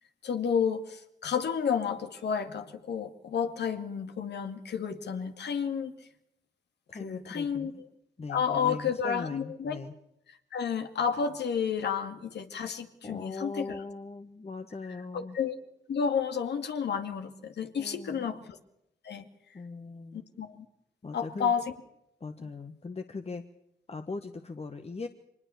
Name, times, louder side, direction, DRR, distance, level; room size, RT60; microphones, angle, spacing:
voice 1, 0.2-6.0 7.0-7.9 8.3-9.8 10.5-13.8 15.1-15.6 15.9-18.5 19.0-19.3 20.1-20.7 21.1-21.7 22.4-22.5, left 7 dB, 65° left, 7 dB, 2.2 m, -31 dB
voice 2, 6.9-7.8 8.2-9.9 13.0-15.4 17.8-18.3 19.5-20.2 21.0-21.5 22.2-23.4 23.9-25.1, left 3 dB, 35° left, 7 dB, 1.5 m, -40 dB
24.0 x 20.0 x 7.1 m, 0.80 s
supercardioid pair, 50°, 19 cm